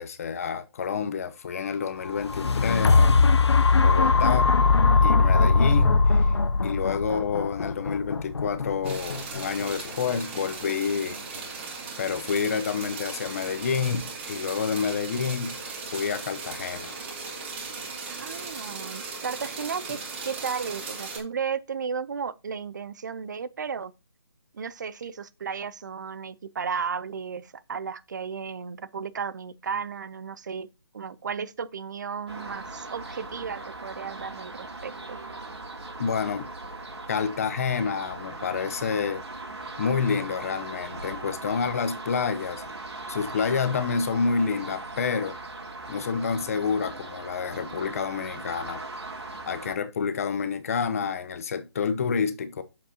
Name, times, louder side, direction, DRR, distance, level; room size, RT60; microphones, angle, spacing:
voice 1, 0.0-3.2 3.8-4.5 5.0-6.3 6.6-11.2 12.0-15.6 15.9-16.9 36.0-36.5 37.1-39.2 39.8-42.6 43.1-45.4 45.9-48.8 49.5-52.6, left 6 dB, 35° left, 0.8 m, -28 dB
sound 1, 2.0-10.1 10.7-10.8, left 4 dB, 85° left, 0.7 m, -21 dB
sound 2, 8.8-21.2, right 4 dB, 25° right, 2.3 m, -38 dB
voice 2, 18.1-23.9 24.5-30.7 30.9-35.2, right 6 dB, 45° right, 0.6 m, -34 dB
sound 3, 32.3-49.7, right 2 dB, 90° right, 2.7 m, -39 dB
7.4 x 7.3 x 2.8 m
hypercardioid pair, 160°, 14 cm